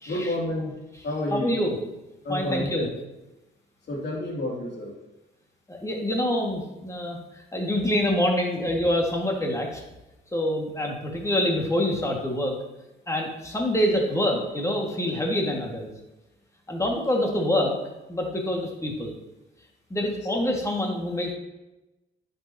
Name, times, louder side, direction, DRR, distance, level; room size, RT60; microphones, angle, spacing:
voice 1, 0.1-0.8 1.0-1.6 2.2-2.7 3.9-5.0 10.8-10.9 20.0-20.1, left 1 dB, 60° left, -2 dB, 2.7 m, -30 dB
voice 2, 1.3-1.7 2.3-2.9 5.7-9.8 10.3-12.6 13.1-15.9 16.7-17.7 18.1-19.2 19.9-21.3, left 1 dB, 15° left, 0 dB, 1.9 m, -26 dB
10.0 x 6.7 x 2.9 m, 1.0 s
cardioid pair, 90°, 20 cm